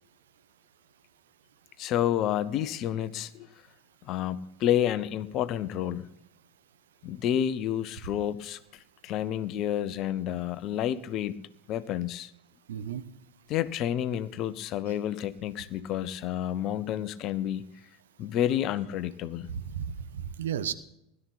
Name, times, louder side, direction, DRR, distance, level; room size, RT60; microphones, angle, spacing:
voice 1, 1.8-3.5 4.0-6.1 7.0-8.6 9.0-11.4 11.7-12.3 13.5-17.6 18.2-19.5, left 11 dB, 45° left, 15 dB, 0.8 m, -29 dB
voice 2, 12.7-13.0 19.5-20.7, right 8 dB, 65° right, 11 dB, 0.9 m, -33 dB
17.0 x 12.0 x 4.1 m, 0.83 s
figure-of-eight pair, 80°, 0 cm